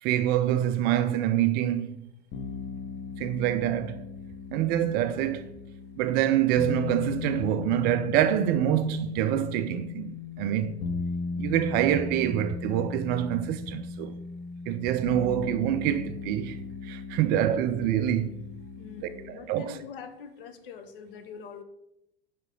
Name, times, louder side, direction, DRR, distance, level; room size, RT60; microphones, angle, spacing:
voice 1, 0.0-2.1 3.2-4.0 4.5-5.5 6.0-10.8 11.4-14.1 14.7-16.6 16.8-18.5 19.0-19.8, right 11 dB, 30° right, 0.4 m, -26 dB
sound 1, 2.3-19.3, left 5 dB, 35° left, 1.1 m, -37 dB
voice 2, 18.8-21.6, left 6 dB, 60° left, 1.0 m, -44 dB
8.0 x 5.2 x 3.8 m
figure-of-eight pair, 80°, 31 cm